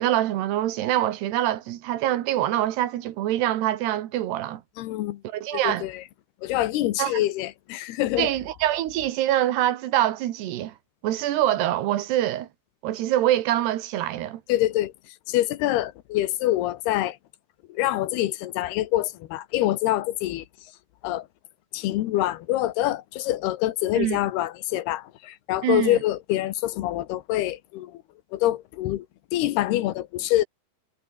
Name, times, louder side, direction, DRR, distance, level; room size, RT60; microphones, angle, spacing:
voice 1, 0.0-4.6 5.3-5.9 7.0-7.3 8.2-10.8 11.0-12.5 12.8-14.4 24.0-24.2 25.6-26.0, right 13 dB, 80° right, 3.6 m, -25 dB
voice 2, 4.8-5.2 5.5-6.0 6.4-8.3 14.5-14.9 15.3-17.2 17.7-20.4 21.0-21.3 21.7-28.0 28.3-29.1 29.3-30.4, left 14 dB, 80° left, 3.1 m, -25 dB
omnidirectional pair, 4.7 m